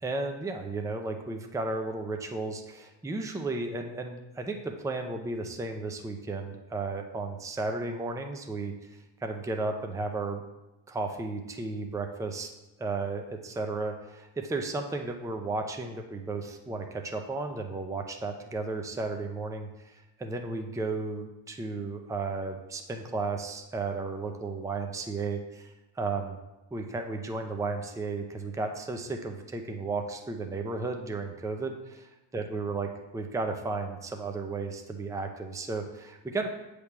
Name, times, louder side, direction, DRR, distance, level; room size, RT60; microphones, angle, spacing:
voice 1, 0.0-8.9 9.2-10.4 10.9-12.5 12.8-25.7 26.0-26.4 26.7-36.5, right 3 dB, 5° right, 4 dB, 0.6 m, -34 dB
8.3 x 3.4 x 5.9 m, 0.99 s
cardioid pair, 110°, 49 cm